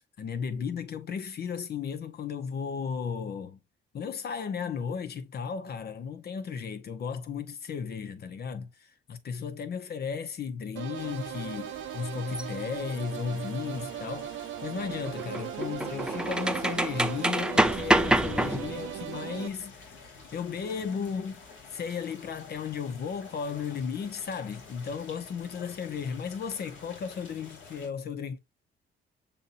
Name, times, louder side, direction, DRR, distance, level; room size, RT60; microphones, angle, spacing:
voice 1, 0.0-3.6 3.9-21.4 21.7-28.4, left 6 dB, 55° left, 0.7 m, -35 dB
sound 1, 10.8-19.5, right 13 dB, 85° right, 0.5 m, -38 dB
sound 2, 10.9-27.9, left 4 dB, 70° left, 2.2 m, -50 dB
sound 3, 12.3-12.4 14.8-18.9, right 1 dB, 5° right, 0.4 m, -27 dB
6.9 x 2.7 x 2.5 m
cardioid pair, 90°, 20 cm